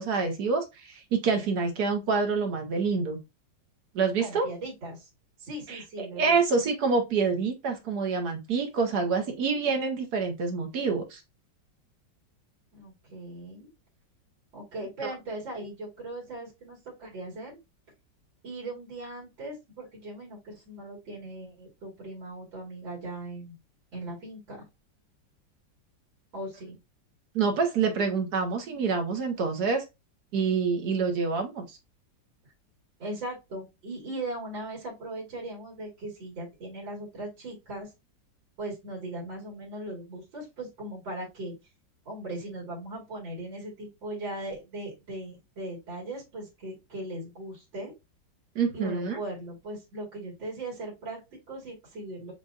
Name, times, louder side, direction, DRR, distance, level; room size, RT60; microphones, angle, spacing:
voice 1, 0.0-3.2 3.9-4.5 5.7-11.2 15.0-15.1 27.3-29.8 30.3-31.8 48.5-49.2, right 5 dB, 60° right, 1.4 m, -27 dB
voice 2, 4.2-5.1 5.4-6.4 12.7-13.7 14.5-17.6 18.4-23.6 23.9-24.6 26.3-26.8 33.0-37.9 38.6-41.5 42.1-47.9 48.7-52.3, right 1 dB, 80° right, 2.7 m, -39 dB
7.4 x 2.5 x 2.4 m
omnidirectional pair, 2.0 m